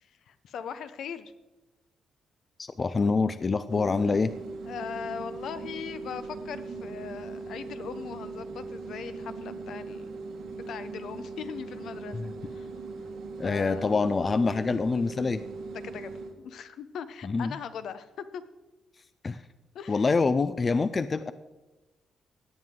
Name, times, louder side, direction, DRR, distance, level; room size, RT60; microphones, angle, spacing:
voice 1, 0.0-1.3 4.6-10.1 10.5-12.2 12.5-12.7 13.4-13.9 15.7-18.4 19.7-20.1, left 7 dB, 65° left, 12 dB, 0.7 m, -40 dB
voice 2, 2.6-4.3 12.1-12.3 13.4-15.4 17.2-17.5 19.2-19.4 19.9-21.3, left 4 dB, 25° left, 13 dB, 0.4 m, -26 dB
sound 1, 3.7-16.3, right 3 dB, 75° right, 1.5 m, -40 dB
17.0 x 9.4 x 3.7 m, 1.1 s
cardioid pair, 145°, 0 cm